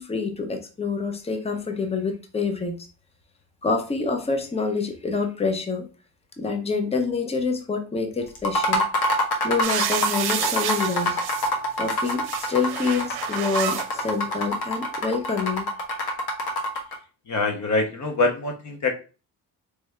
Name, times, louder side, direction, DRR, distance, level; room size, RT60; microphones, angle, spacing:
voice 1, 0.0-2.8 3.6-5.9 6.4-8.9 9.4-11.2 11.8-15.7, left 4 dB, 15° left, 5 dB, 0.7 m, -27 dB
sound 1, 8.3-17.0, left 1 dB, 65° left, 1.2 m, -25 dB
sound 2, 9.6-11.5 11.9-13.9 14.8-14.9, right 9 dB, 70° right, 0.6 m, -30 dB
voice 2, 17.3-18.9, left 3 dB, 45° left, 4 dB, 1.0 m, -24 dB
3.4 x 3.2 x 3.2 m, 0.34 s
cardioid pair, 95°, 39 cm